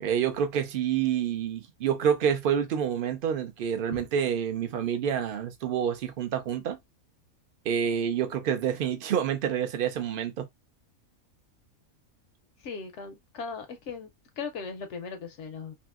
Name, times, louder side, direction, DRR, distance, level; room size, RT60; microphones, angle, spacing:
voice 1, 0.0-6.8 7.7-10.5, right 8 dB, 65° right, 0.5 m, -28 dB
voice 2, 12.6-14.1 14.4-15.7, left 5 dB, 65° left, 0.7 m, -38 dB
2.8 x 2.7 x 2.3 m
omnidirectional pair, 1.5 m